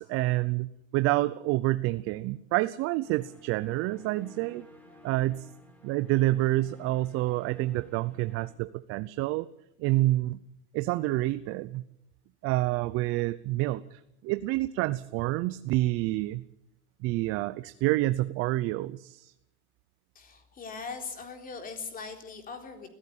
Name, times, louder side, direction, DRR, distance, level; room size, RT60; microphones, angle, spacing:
voice 1, 0.0-4.7 5.0-5.5 5.8-9.5 9.8-10.4 10.7-11.8 12.4-16.4 17.0-19.3, right 18 dB, 40° right, 14 dB, 0.7 m, -28 dB
sound 1, 3.0-8.5, left 1 dB, 5° left, 4.5 m, -54 dB
voice 2, 20.2-22.9, left 5 dB, 25° left, 5 dB, 3.9 m, -40 dB
21.5 x 15.5 x 8.8 m, 0.81 s
supercardioid pair, 130°, 35 cm